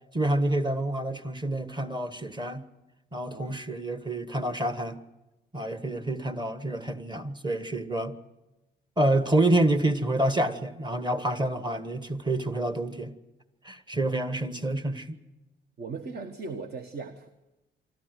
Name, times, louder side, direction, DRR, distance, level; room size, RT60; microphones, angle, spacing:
voice 1, 0.1-2.6 3.1-5.0 5.5-8.2 9.0-13.1 13.7-15.2, right 1 dB, 20° right, 11 dB, 1.6 m, -28 dB
voice 2, 3.2-3.6 15.8-17.3, right 4 dB, 55° right, 8 dB, 1.5 m, -38 dB
24.5 x 13.5 x 9.3 m, 1.0 s
cardioid pair, 90°, 20 cm